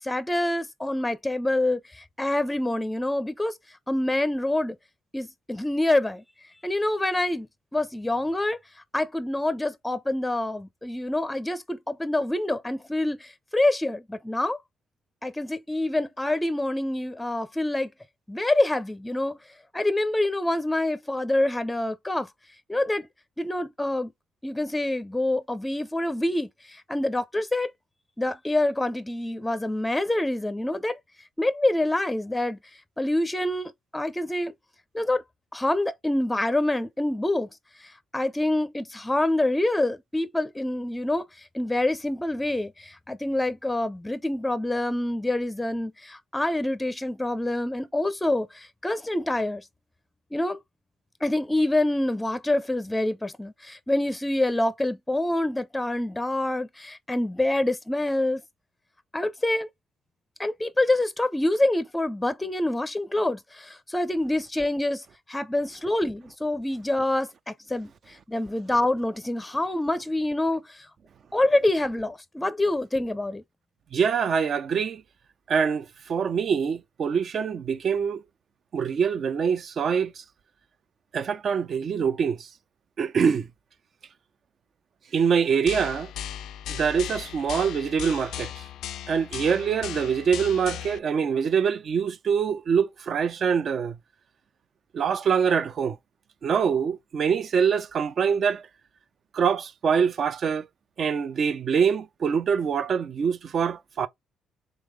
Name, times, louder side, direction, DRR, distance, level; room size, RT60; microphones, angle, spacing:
voice 1, 0.0-3.6 3.9-4.8 5.1-6.2 6.6-7.5 7.7-8.6 8.9-14.6 15.2-17.9 18.3-19.4 19.7-22.3 22.7-23.1 23.4-24.1 24.4-27.7 28.2-31.0 31.4-32.6 33.0-34.5 34.9-35.2 35.5-37.5 37.8-41.2 41.5-49.6 50.3-50.6 51.2-58.4 59.1-59.7 60.4-70.9 71.3-73.4, left 1 dB, 10° left, 0.5 m, -26 dB
voice 2, 73.9-75.0 75.5-78.2 78.7-80.2 81.1-82.5 83.0-83.5 85.1-86.1 86.7-88.5 89.1-94.0 94.9-96.0 96.4-98.6 99.3-100.7 101.0-104.1, right 6 dB, 55° right, 0.4 m, -24 dB
sound 1, 85.7-91.0, left 11 dB, 80° left, 0.3 m, -37 dB
3.6 x 3.3 x 3.2 m
cardioid pair, 90°, 0 cm